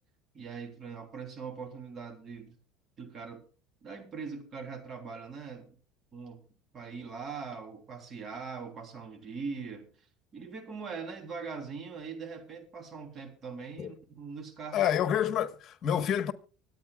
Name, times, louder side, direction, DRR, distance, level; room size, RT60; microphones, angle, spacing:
voice 1, 0.3-2.6 3.0-3.4 3.8-5.7 6.1-6.4 6.7-9.9 10.3-14.9, right 5 dB, 40° right, 3.2 m, -41 dB
voice 2, 14.7-16.3, left 9 dB, 50° left, 1.3 m, -28 dB
24.5 x 9.3 x 2.4 m
supercardioid pair, 100°, 0 cm